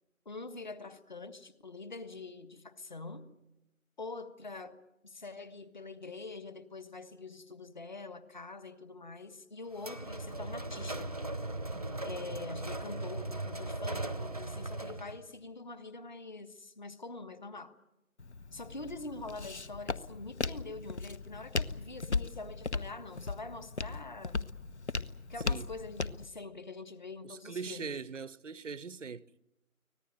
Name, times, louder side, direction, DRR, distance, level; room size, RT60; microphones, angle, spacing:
voice 1, 0.2-3.3 4.0-4.8 5.0-11.2 12.0-17.7 18.5-24.5 25.3-27.9, left 3 dB, 30° left, 1.4 m, -45 dB
sound 1, 9.8-15.2, right 2 dB, 25° right, 0.8 m, -38 dB
Walk footsteps, 18.2-26.3, left 4 dB, 50° left, 1.0 m, -37 dB
voice 2, 27.2-29.3, right 5 dB, 60° right, 0.8 m, -41 dB
24.5 x 18.5 x 9.0 m
figure-of-eight pair, 160°, 43 cm